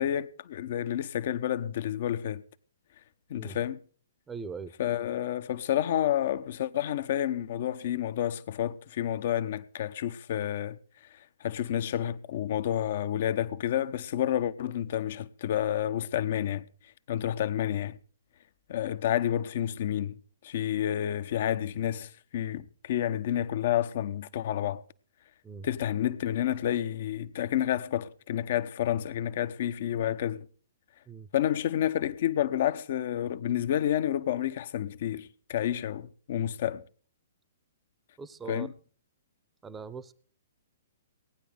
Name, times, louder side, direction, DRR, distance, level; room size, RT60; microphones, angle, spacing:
voice 1, 0.0-2.4 3.3-3.8 4.8-10.8 11.4-16.6 17.1-18.0 18.7-20.2 20.4-24.8 25.6-30.5 31.3-36.8 38.5-38.7, left 11 dB, 50° left, 0.9 m, -29 dB
voice 2, 4.3-4.7 25.4-25.7 31.1-31.3 38.2-38.7 39.6-40.1, right 5 dB, 10° right, 0.8 m, -41 dB
18.0 x 10.0 x 5.0 m
figure-of-eight pair, 120°, 0 cm